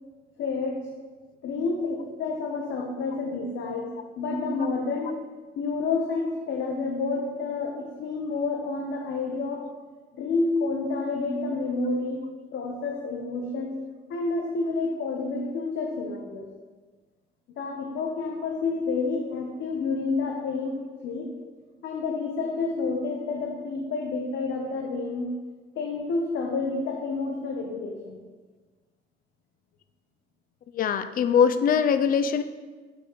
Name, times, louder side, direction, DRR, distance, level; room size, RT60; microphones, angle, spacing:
voice 1, 0.4-0.8 1.4-5.2 5.6-9.6 10.2-12.2 12.5-13.7 14.1-16.5 17.6-21.3 21.8-25.3 25.8-28.2, left 3 dB, 70° left, 0 dB, 0.9 m, -29 dB
voice 2, 30.7-32.4, left 7 dB, 45° left, 10 dB, 0.4 m, -22 dB
7.8 x 5.9 x 3.1 m, 1.4 s
cardioid pair, 90°, 20 cm